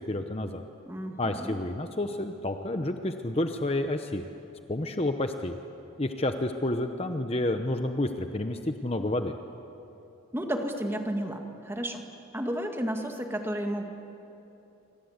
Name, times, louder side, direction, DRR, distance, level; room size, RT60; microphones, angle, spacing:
voice 1, 0.1-0.6 1.2-4.2 4.7-5.6 6.0-9.3, left 1 dB, 30° left, 6 dB, 0.9 m, -30 dB
voice 2, 0.9-1.6 10.3-12.1 12.3-13.8, equal, 10° right, 3 dB, 2.0 m, -32 dB
28.5 x 25.5 x 8.1 m, 3.0 s
head